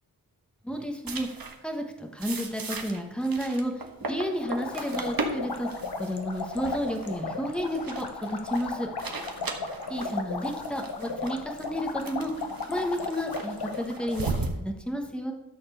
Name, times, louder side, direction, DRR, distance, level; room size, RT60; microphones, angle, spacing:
voice 1, 0.6-1.3 1.6-5.7 6.0-8.9 9.9-15.3, equal, ahead, 3 dB, 1.3 m, -32 dB
sound 1, 1.1-1.6 2.2-14.5, right 3 dB, 60° right, 1.3 m, -37 dB
sound 2, 4.4-14.4, left 4 dB, 80° left, 1.2 m, -35 dB
12.0 x 4.3 x 6.9 m, 1.0 s
wide cardioid pair, 110°, 39 cm